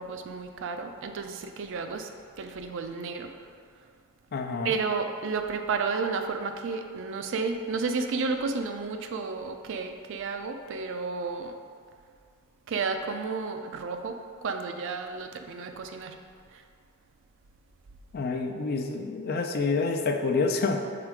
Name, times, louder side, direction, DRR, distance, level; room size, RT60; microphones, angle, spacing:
voice 1, 0.0-2.1 2.4-3.3 4.6-11.5 12.7-16.2, right 4 dB, 60° right, 6 dB, 0.4 m, -32 dB
voice 2, 4.3-4.7 18.1-20.8, left 4 dB, 45° left, 4 dB, 0.4 m, -28 dB
4.9 x 4.1 x 4.8 m, 2.1 s
head